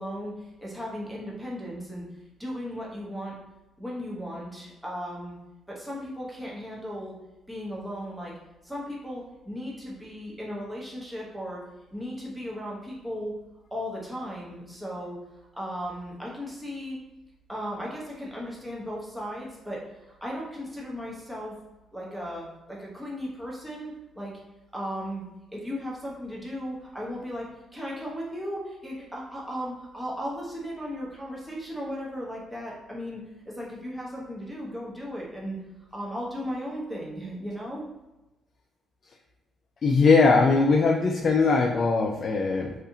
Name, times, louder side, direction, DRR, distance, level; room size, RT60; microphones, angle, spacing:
voice 1, 0.0-2.0 2.4-3.3 3.8-5.4 5.7-7.1 7.5-8.3 8.6-11.6 11.9-13.3 13.7-15.2 15.6-17.0 17.5-21.5 21.9-24.3 24.7-25.2 25.5-35.6 35.9-37.9, equal, 5° right, -4 dB, 0.9 m, -36 dB
voice 2, 39.8-42.8, left 4 dB, 50° left, 1 dB, 0.3 m, -20 dB
2.6 x 2.4 x 2.7 m, 1.0 s
cardioid pair, 90°, 0 cm